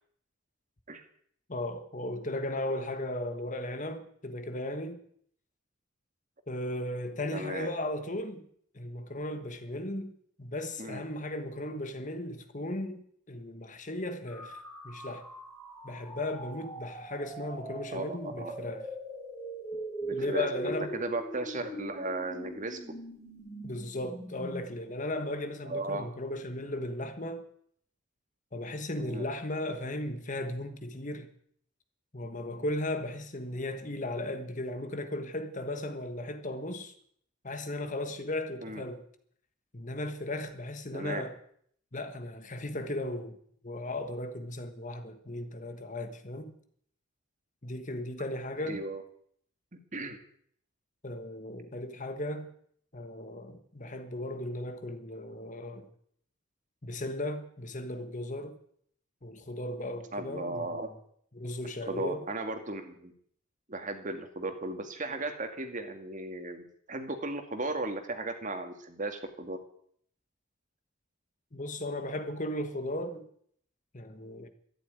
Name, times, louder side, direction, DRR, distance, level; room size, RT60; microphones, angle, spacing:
voice 1, 1.5-5.0 6.5-8.4 8.7-15.2 15.8-18.9 20.1-20.9 21.5-21.6 23.6-27.4 28.5-31.3 32.1-36.9 37.4-39.0 39.7-41.4 41.9-43.4 43.6-46.5 47.6-48.8 51.0-52.5 52.9-55.9 56.8-58.6 59.2-61.0 61.3-62.2 71.5-73.3 73.9-74.5, left 1 dB, 40° left, 1.5 m, -36 dB
voice 2, 7.3-7.7 10.8-11.0 17.9-18.5 20.0-22.8 25.6-26.1 29.0-29.2 38.6-38.8 40.9-41.2 48.6-49.0 49.9-50.2 60.1-60.9 61.9-63.1 63.7-69.6, right 2 dB, 40° right, 2.2 m, -36 dB
sound 1, 14.3-24.6, right 1 dB, 15° left, 4.4 m, -41 dB
13.0 x 11.0 x 9.4 m
head